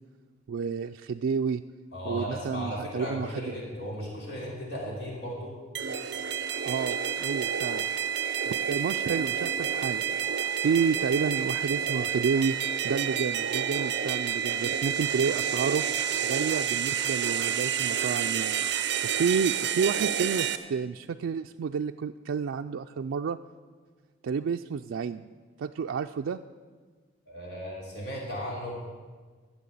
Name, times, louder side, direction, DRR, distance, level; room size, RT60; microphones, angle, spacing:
voice 1, 0.5-1.6 2.0-3.4 6.6-7.9 8.5-10.1 10.6-12.6 12.8-15.8 16.2-18.6 19.2-23.4 24.2-25.3 25.6-26.4, right 6 dB, 85° right, 5 dB, 0.4 m, -30 dB
voice 2, 1.9-5.6 10.2-10.3 27.3-28.7, equal, 55° left, -3 dB, 3.0 m, -36 dB
sound 1, 5.7-20.6, right 8 dB, 60° right, 0.7 m, -29 dB
12.5 x 7.7 x 8.3 m, 1.5 s
head